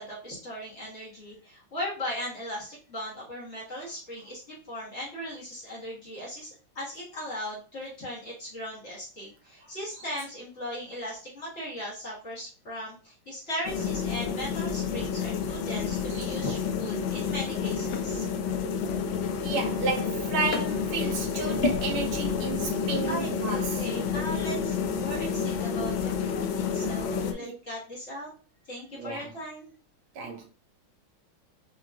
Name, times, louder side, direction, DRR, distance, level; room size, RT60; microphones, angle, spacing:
voice 1, 0.0-18.3 23.1-28.3 28.6-29.7, equal, 35° left, 1.6 m, -38 dB
sound 1, 13.7-27.3, left 6 dB, 75° left, 1.3 m, -29 dB
voice 2, 19.4-24.3 27.4-27.5 28.9-29.3 30.1-30.4, right 4 dB, 80° right, 1.7 m, -32 dB
5.0 x 2.8 x 2.3 m
omnidirectional pair, 2.3 m